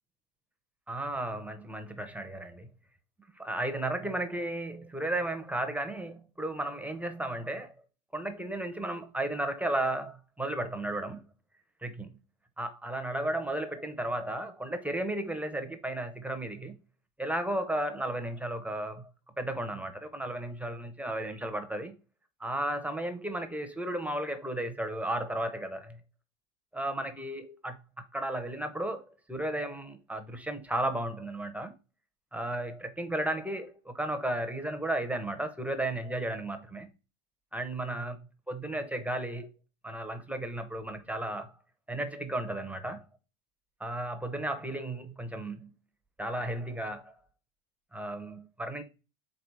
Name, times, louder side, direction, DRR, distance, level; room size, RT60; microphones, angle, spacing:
voice 1, 0.9-2.7 3.4-7.7 8.1-11.2 11.8-12.1 12.6-16.8 17.2-19.1 19.4-21.9 22.4-26.0 26.7-27.8 28.1-31.7 32.3-36.9 37.5-38.2 38.5-39.5 39.8-41.5 41.9-43.0 43.8-45.7 46.2-47.1 47.9-48.8, right 1 dB, 5° right, 0.6 m, -34 dB
4.7 x 3.7 x 5.3 m
supercardioid pair, 125°, 34 cm